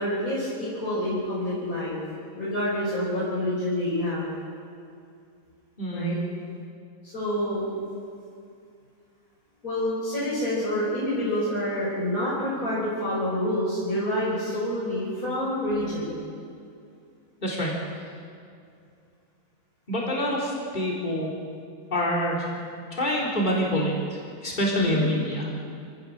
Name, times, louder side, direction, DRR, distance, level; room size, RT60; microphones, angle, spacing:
voice 1, 0.0-2.0 2.4-4.3 5.9-6.2 7.1-7.8 9.6-16.2 24.7-25.0, left 1 dB, 75° left, -8 dB, 6.3 m, -27 dB
voice 2, 5.8-6.1 17.4-17.7 19.9-21.3 21.9-22.5 23.0-25.5, equal, 30° left, -4 dB, 3.8 m, -26 dB
26.5 x 17.0 x 6.5 m, 2.4 s
omnidirectional pair, 1.5 m